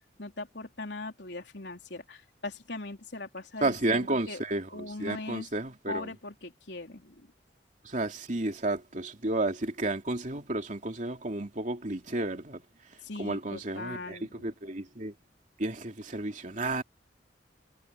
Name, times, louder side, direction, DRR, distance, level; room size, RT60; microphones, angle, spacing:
voice 1, 0.2-4.4 4.7-5.5 5.9-7.3 13.0-14.5, left 2 dB, 70° left, 3.8 m, -40 dB
voice 2, 3.6-6.1 7.8-12.6 12.9-15.1 15.6-16.8, right 2 dB, 45° right, 2.9 m, -32 dB
head